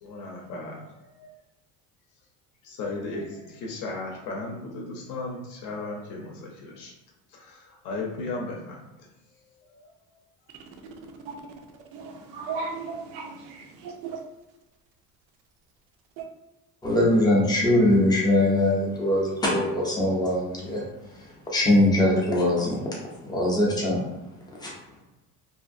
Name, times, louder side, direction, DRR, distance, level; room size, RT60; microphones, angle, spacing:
voice 1, 0.0-0.8 1.2-1.3 2.6-6.9 7.3-8.8 9.8-9.9, left 3 dB, 60° left, 0 dB, 0.6 m, -35 dB
voice 2, 11.9-14.2 16.2-16.3, right 4 dB, 85° right, 3 dB, 0.6 m, -36 dB
voice 3, 16.8-20.8 21.5-22.8 23.2-24.0 24.6-24.7, left 1 dB, 10° left, -4 dB, 0.4 m, -21 dB
2.6 x 2.5 x 2.5 m, 1.0 s
cardioid pair, 175°, 35 cm